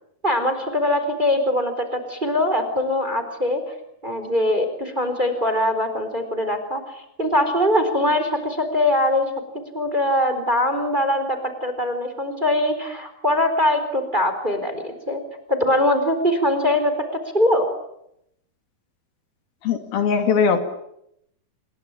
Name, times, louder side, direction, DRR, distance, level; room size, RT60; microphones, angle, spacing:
voice 1, 0.2-3.6 4.0-9.3 9.7-15.2 15.5-17.6, left 1 dB, 10° right, 8 dB, 4.0 m, -22 dB
voice 2, 19.6-20.6, left 6 dB, 70° left, 7 dB, 4.2 m, -20 dB
28.5 x 22.0 x 8.9 m, 0.77 s
omnidirectional pair, 4.4 m